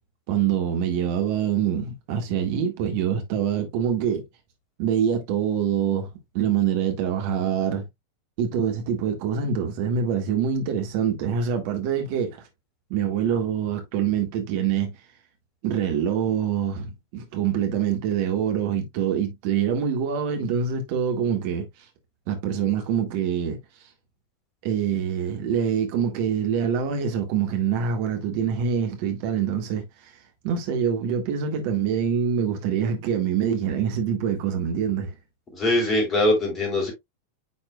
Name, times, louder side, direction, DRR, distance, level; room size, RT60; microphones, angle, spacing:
voice 1, 0.3-4.2 4.8-6.1 6.3-7.8 8.4-12.4 12.9-14.9 15.6-21.8 22.3-23.6 24.6-30.1 30.4-35.1, right 8 dB, 45° right, 1.6 m, -25 dB
voice 2, 35.5-36.9, left 1 dB, 25° left, 3.7 m, -22 dB
9.7 x 4.3 x 2.3 m
figure-of-eight pair, 90°, 0 cm